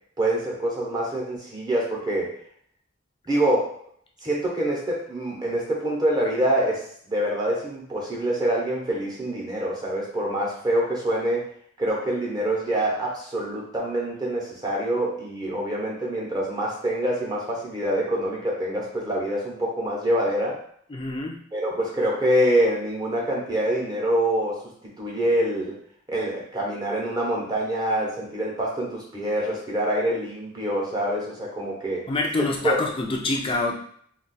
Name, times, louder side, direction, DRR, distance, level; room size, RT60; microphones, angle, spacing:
voice 1, 0.2-2.3 3.3-3.7 4.2-11.4 11.8-20.6 21.5-25.8 26.1-32.0 32.6-32.8, right 1 dB, 20° right, -4 dB, 0.7 m, -25 dB
voice 2, 20.9-21.4 32.1-33.8, left 3 dB, 25° left, 0 dB, 0.5 m, -26 dB
2.4 x 2.3 x 3.9 m, 0.63 s
head